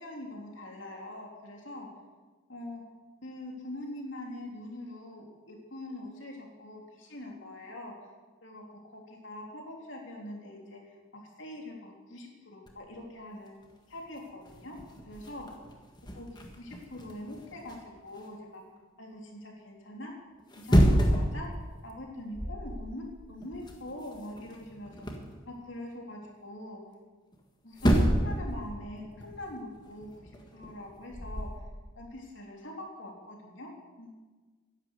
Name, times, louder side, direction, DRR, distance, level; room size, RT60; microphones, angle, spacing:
voice 1, 0.0-1.9 2.5-2.8 3.2-7.9 8.4-13.5 13.9-14.8 15.0-15.5 16.2-16.3 16.5-18.6 19.0-20.1 20.6-21.5 21.8-25.0 25.5-26.8 27.6-31.7 32.0-33.7 34.0-34.1, left 1 dB, 65° left, 0 dB, 3.4 m, -43 dB
sound 1, 12.7-13.0 13.6-13.7 14.0-18.3 20.4-21.4 21.7-22.0 22.3-22.9 23.1-25.3 27.3-27.4 27.7-28.5 28.7-31.6, equal, 20° left, 1.7 m, -29 dB
12.0 x 11.0 x 8.0 m, 1.3 s
head